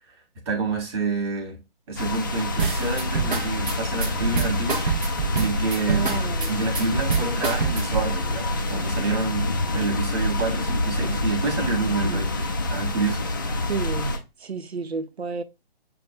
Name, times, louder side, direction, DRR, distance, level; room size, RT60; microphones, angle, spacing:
voice 1, 0.4-1.6 1.9-6.1 6.5-13.3, right 4 dB, 25° right, 1.2 m, -28 dB
sound 1, 2.0-14.2, left 2 dB, 20° left, 0.4 m, -27 dB
sound 2, 2.6-8.1, right 6 dB, 55° right, 0.8 m, -26 dB
voice 2, 5.9-6.6 12.0-12.2 13.7-15.4, right 5 dB, 85° right, 0.6 m, -32 dB
6.8 x 2.3 x 2.5 m
figure-of-eight pair, 135°, 31 cm